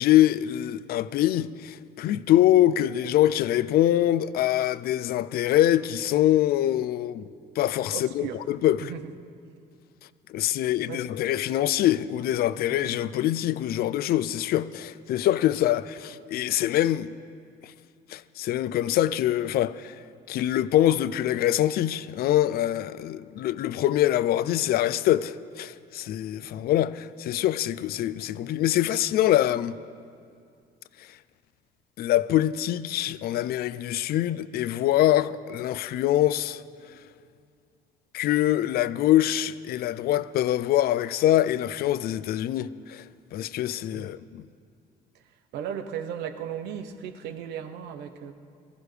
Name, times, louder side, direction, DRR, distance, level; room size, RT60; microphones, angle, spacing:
voice 1, 0.0-7.2 7.6-8.9 10.3-17.1 18.1-20.0 20.3-29.7 32.0-36.6 38.1-43.0 43.3-44.4, left 13 dB, 65° left, 0.5 m, -24 dB
voice 2, 7.9-8.4 8.8-9.1 10.8-11.1 12.8-13.0 43.9-44.1 45.5-48.3, right 8 dB, 85° right, 1.0 m, -36 dB
21.5 x 15.0 x 3.3 m
cardioid pair, 110°, 17 cm